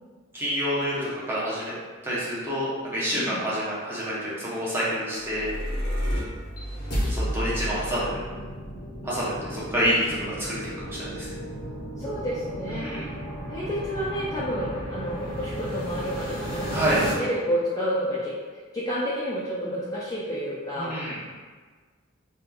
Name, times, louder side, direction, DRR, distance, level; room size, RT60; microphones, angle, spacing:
voice 1, 0.3-1.7 2.0-5.5 7.1-8.2 9.0-11.3 12.7-13.0 16.7-17.0 20.8-21.2, equal, 10° right, -9 dB, 0.7 m, -28 dB
sound 1, 5.2-17.1, equal, 55° left, 0.7 m, -33 dB
voice 2, 12.0-12.9 13.5-18.3 18.7-20.9, equal, 20° left, -8 dB, 0.3 m, -30 dB
2.8 x 2.2 x 2.3 m, 1.5 s
head